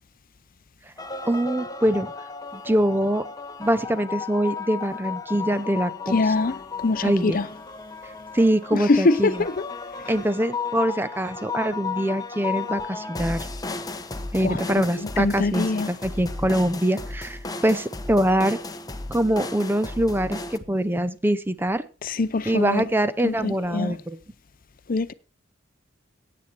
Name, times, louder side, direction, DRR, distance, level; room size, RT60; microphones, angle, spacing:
sound 1, 1.0-20.6, left 4 dB, 20° left, 1.0 m, -34 dB
voice 1, 1.2-2.1 2.5-3.2 3.6-6.2 7.0-7.4 8.3-9.4 10.1-13.5 14.3-18.6 19.1-21.8 22.5-24.2, right 1 dB, 10° right, 0.7 m, -24 dB
voice 2, 6.1-7.5 8.7-9.5 14.4-15.9 22.0-22.8 23.2-23.9 24.9-25.1, left 3 dB, 50° left, 0.6 m, -24 dB
16.5 x 8.6 x 4.5 m
head